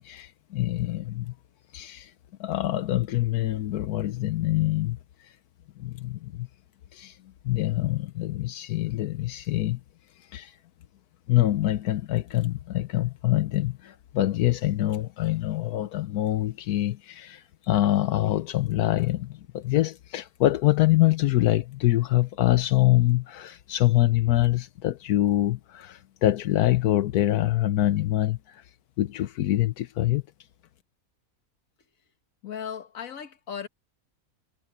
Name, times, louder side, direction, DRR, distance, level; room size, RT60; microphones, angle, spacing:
voice 1, 0.0-1.3 1.7-2.1 2.4-5.4 5.8-6.5 6.9-7.2 7.4-9.8 10.2-10.6 11.3-28.6 29.0-30.2, left 15 dB, 85° left, 1.2 m, -25 dB
voice 2, 32.4-33.7, left 8 dB, 60° left, 1.7 m, -36 dB
omnidirectional pair, 1.6 m